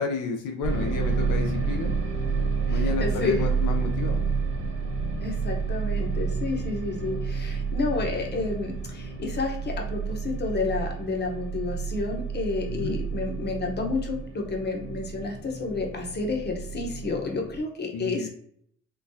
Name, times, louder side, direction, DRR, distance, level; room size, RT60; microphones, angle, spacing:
voice 1, 0.0-1.9 2.7-4.2 12.7-13.0 17.9-18.3, left 4 dB, 85° left, 3 dB, 0.7 m, -31 dB
sound 1, 0.6-17.6, right 5 dB, 40° right, 1.3 m, -30 dB
voice 2, 2.7-3.5 5.2-18.3, left 3 dB, 35° left, 1 dB, 0.9 m, -30 dB
3.8 x 2.3 x 2.7 m, 0.66 s
cardioid pair, 90°, 30 cm